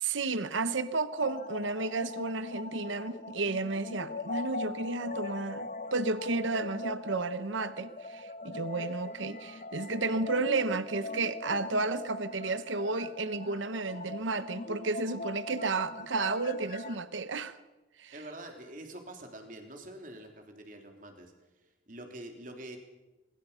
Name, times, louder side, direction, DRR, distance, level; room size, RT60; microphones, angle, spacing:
voice 1, 0.0-17.6 18.0-18.1, right 3 dB, 75° right, 12 dB, 1.0 m, -32 dB
sound 1, 1.2-17.0, left 2 dB, 40° left, 0.9 m, -41 dB
voice 2, 18.1-21.3 21.9-22.8, right 1 dB, 40° right, 4 dB, 3.4 m, -45 dB
24.5 x 21.5 x 5.7 m, 1.1 s
head